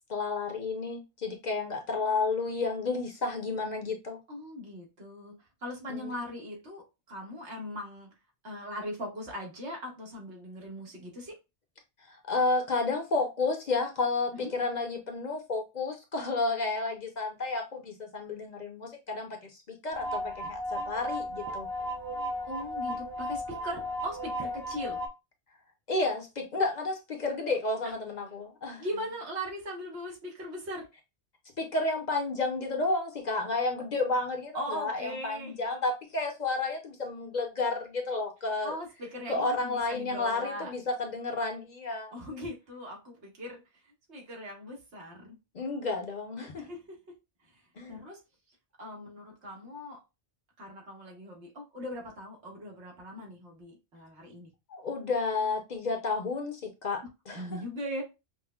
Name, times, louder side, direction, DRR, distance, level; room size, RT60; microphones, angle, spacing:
voice 1, 0.1-4.2 5.9-6.2 12.1-21.7 25.9-28.8 31.6-38.7 39.3-42.1 45.5-46.7 47.8-48.0 54.7-57.0 57.3-57.6, left 3 dB, 45° left, 0.7 m, -31 dB
voice 2, 4.3-8.1 8.4-11.3 14.3-14.5 22.4-25.0 27.8-27.9 28.8-30.9 34.5-35.6 38.6-40.7 42.1-45.4 46.5-47.1 47.4-47.6 47.9-48.2 48.8-50.0 50.6-54.5 57.3-58.0, equal, 85° right, 1.6 m, -40 dB
sound 1, 19.9-25.1, equal, 30° right, 0.4 m, -35 dB
5.4 x 2.1 x 2.3 m
omnidirectional pair, 1.1 m